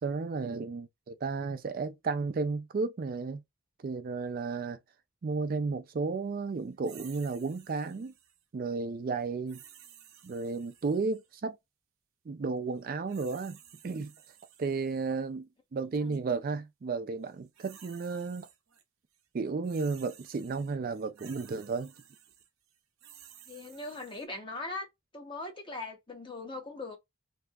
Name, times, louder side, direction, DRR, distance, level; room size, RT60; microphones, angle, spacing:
voice 1, 0.0-3.4 3.8-4.8 5.2-8.1 8.5-9.6 10.2-11.6 12.3-13.6 13.8-14.1 14.6-18.5 19.3-21.9, right 4 dB, 40° right, 0.3 m, -33 dB
sound 1, 6.8-8.4 9.5-11.3 12.8-15.2 15.9-16.2 17.2-18.8 19.1-24.3, right 9 dB, 80° right, 0.7 m, -55 dB
voice 2, 23.5-24.9 25.1-27.0, left 2 dB, 25° left, 0.9 m, -40 dB
3.3 x 2.7 x 2.3 m
head